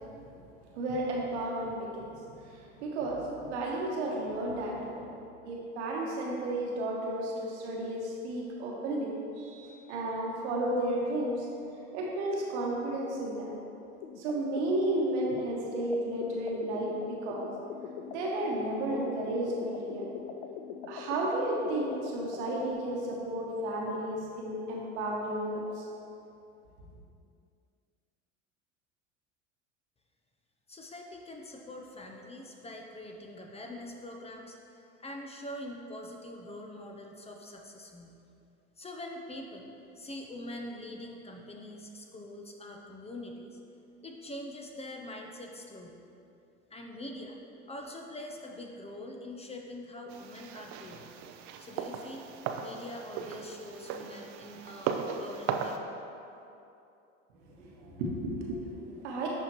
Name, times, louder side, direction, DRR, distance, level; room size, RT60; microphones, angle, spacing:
voice 1, 0.7-2.1 2.8-5.1 5.4-11.5 11.9-13.5 14.2-17.5 18.1-20.1 20.9-25.8 57.6-59.3, right 1 dB, 70° right, -2 dB, 1.2 m, -33 dB
sound 1, 14.0-22.7, left 7 dB, 65° left, 0.5 m, -43 dB
voice 2, 30.7-38.2 38.8-39.7 40.0-43.6 44.0-46.0 46.7-47.4 47.7-51.1 51.6-52.3 52.6-55.8, left 1 dB, 15° left, 2 dB, 0.6 m, -44 dB
sound 2, 50.1-55.8, right 7 dB, 50° right, 0.6 m, -37 dB
11.0 x 3.7 x 3.0 m, 2.7 s
hypercardioid pair, 75°, 36 cm